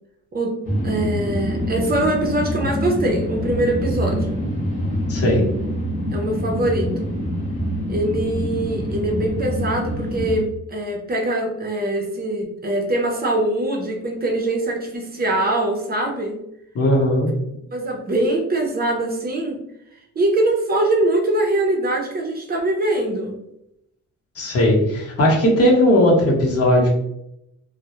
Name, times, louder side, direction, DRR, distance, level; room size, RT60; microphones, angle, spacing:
sound 1, 0.6-10.4, equal, 25° left, 1.0 m, -25 dB
voice 1, 0.8-4.4 6.1-7.2 7.9-16.4 17.7-19.6 20.2-23.4, right 1 dB, 30° right, 1 dB, 0.5 m, -23 dB
voice 2, 5.1-5.4 16.7-17.3 24.4-26.9, left 1 dB, 50° left, -3 dB, 0.9 m, -17 dB
2.2 x 2.0 x 2.9 m, 0.81 s
cardioid pair, 90°, 30 cm